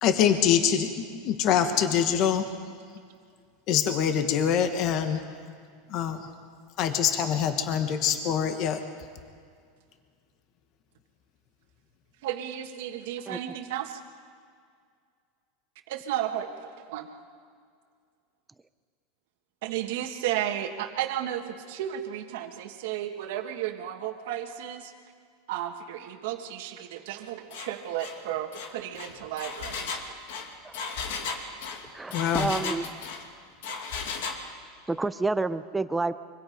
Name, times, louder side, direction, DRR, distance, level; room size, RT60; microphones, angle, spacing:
voice 1, 0.0-0.9 1.2-2.4 3.7-5.2 5.9-6.3 6.8-8.8 32.1-32.5, left 8 dB, 45° left, 7 dB, 1.5 m, -24 dB
voice 2, 12.2-14.0 15.9-17.1 19.6-24.9 25.5-30.0, right 11 dB, 70° right, 4 dB, 1.6 m, -33 dB
Engine, 27.5-27.7 28.0-28.2 28.5-33.2 33.6-34.4, left 5 dB, 75° left, 2.5 m, -35 dB
voice 3, 30.6-31.2 31.9-32.8 34.9-36.1, right 3 dB, 10° right, 12 dB, 0.6 m, -29 dB
25.0 x 24.5 x 5.3 m, 2.1 s
supercardioid pair, 140°, 0 cm